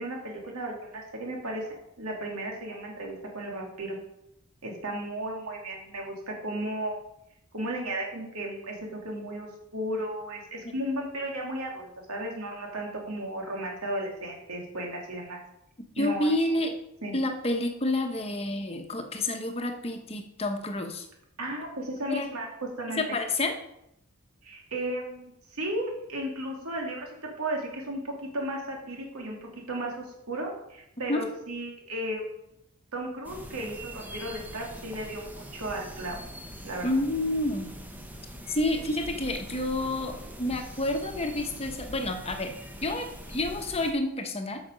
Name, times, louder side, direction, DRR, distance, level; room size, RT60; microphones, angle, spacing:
voice 1, 0.0-4.0 4.6-7.0 7.5-8.8 9.0-15.4 16.0-16.3 17.0-17.1 21.4-22.5 22.8-23.0 24.4-32.2 32.9-36.2 36.6-36.9, right 1 dB, 75° right, 0 dB, 2.6 m, -34 dB
voice 2, 16.0-16.7 17.1-21.1 22.1-22.3 23.0-23.6 31.1-31.2 36.8-37.7 38.5-42.5 42.8-44.7, left 2 dB, 25° left, 5 dB, 1.0 m, -29 dB
sound 1, 33.2-43.9, equal, 10° right, 0.9 m, -43 dB
8.6 x 6.6 x 5.1 m, 0.81 s
head